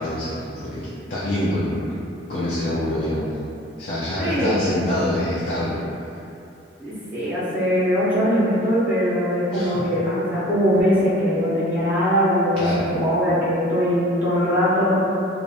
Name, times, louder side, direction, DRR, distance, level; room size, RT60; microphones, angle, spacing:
voice 1, 0.0-1.9 2.3-3.3 3.8-5.8 9.5-9.8 12.6-12.8, left 1 dB, 50° left, -9 dB, 0.4 m, -25 dB
voice 2, 4.2-4.7 6.8-15.0, equal, 10° right, -11 dB, 0.5 m, -21 dB
2.4 x 2.1 x 2.6 m, 2.7 s
head